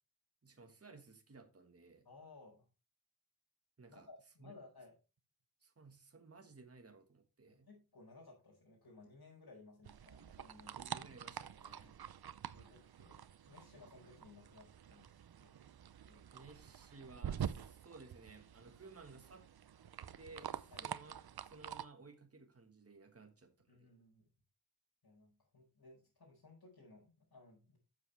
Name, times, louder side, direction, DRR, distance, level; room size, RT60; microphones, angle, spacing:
voice 1, 0.4-2.1 3.8-4.1 4.4-4.5 5.6-7.7 10.8-11.9 16.3-19.5 20.2-23.9, right 3 dB, 40° right, 1.5 m, -57 dB
voice 2, 2.0-2.6 3.9-4.9 7.4-10.8 11.7-11.9 12.5-15.5 16.0-16.2 20.7-20.9 23.7-24.3 25.0-27.8, left 3 dB, 80° left, 4.8 m, -60 dB
sound 1, 9.8-21.8, right 9 dB, 75° right, 0.6 m, -47 dB
11.0 x 7.6 x 3.4 m
wide cardioid pair, 75°, 38 cm